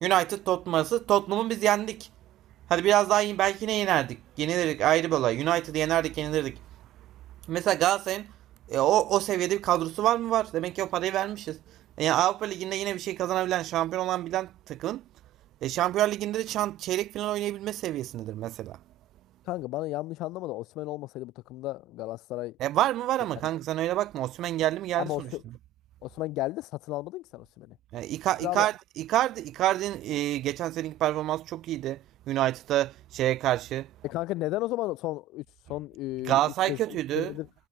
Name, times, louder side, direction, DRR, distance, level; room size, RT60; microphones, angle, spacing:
voice 1, 0.0-2.1 2.7-6.6 7.5-8.3 8.7-11.6 12.0-15.0 15.6-18.8 22.6-25.3 27.9-33.9 36.3-37.3, right 14 dB, 35° right, 0.6 m, -27 dB
voice 2, 19.4-22.6 25.0-25.4 26.0-27.8 28.4-28.7 34.0-37.5, left 18 dB, 40° left, 1.2 m, -34 dB
supercardioid pair, 155°, 0 cm